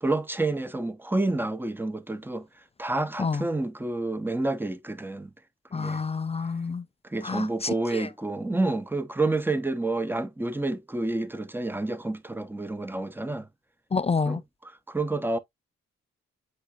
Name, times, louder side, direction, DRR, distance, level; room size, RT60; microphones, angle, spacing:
voice 1, 0.0-2.5 2.8-5.3 5.7-6.0 7.1-13.5 14.2-14.4 14.9-15.4, right 2 dB, 5° right, 0.8 m, -29 dB
voice 2, 5.7-6.8 7.2-8.1 13.9-14.4, left 5 dB, 20° left, 0.3 m, -29 dB
7.9 x 2.7 x 2.4 m
supercardioid pair, 45°, 29 cm